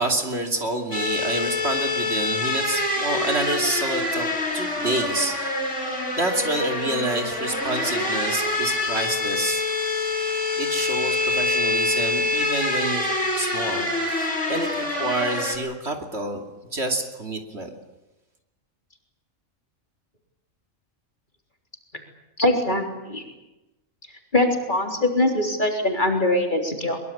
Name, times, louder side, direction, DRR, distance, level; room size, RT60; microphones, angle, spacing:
voice 1, 0.0-5.4 6.1-9.6 10.6-16.4 16.7-17.7, right 2 dB, 55° right, 3 dB, 3.0 m, -28 dB
sound 1, 0.9-15.6, left 2 dB, 65° left, 5.0 m, -26 dB
voice 2, 22.4-23.2 24.3-27.0, left 1 dB, 35° left, 2 dB, 3.9 m, -22 dB
23.0 x 22.0 x 8.6 m, 1.0 s
omnidirectional pair, 1.3 m